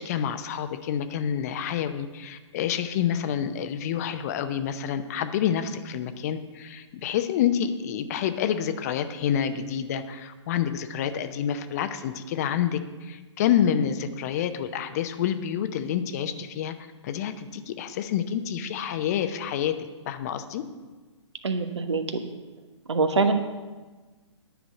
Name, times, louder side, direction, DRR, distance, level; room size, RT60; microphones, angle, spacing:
voice 1, 0.0-20.6, left 9 dB, 30° left, 10 dB, 0.7 m, -28 dB
voice 2, 21.4-22.2 22.9-23.3, right 4 dB, 65° right, 8 dB, 1.2 m, -24 dB
10.0 x 6.2 x 8.2 m, 1.3 s
figure-of-eight pair, 130°, 16 cm